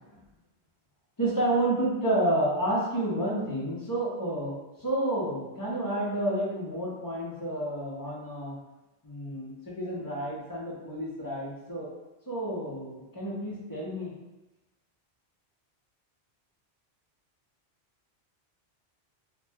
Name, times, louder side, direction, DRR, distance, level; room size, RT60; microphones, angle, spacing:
voice 1, 1.2-8.6 9.0-11.9 12.3-14.1, right 1 dB, 25° left, -6 dB, 0.6 m, -30 dB
2.8 x 2.1 x 3.3 m, 0.99 s
omnidirectional pair, 1.1 m